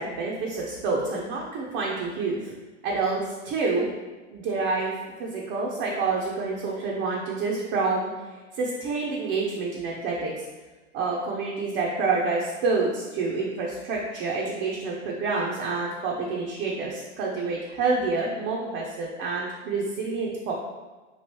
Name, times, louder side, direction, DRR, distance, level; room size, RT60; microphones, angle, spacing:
voice 1, 0.0-2.5 2.8-3.2 3.4-3.9 4.3-4.9 5.2-8.1 8.5-10.4 10.9-20.5, right 3 dB, 35° right, -3 dB, 0.5 m, -28 dB
3.0 x 2.6 x 2.9 m, 1.2 s
hypercardioid pair, 100°, 36 cm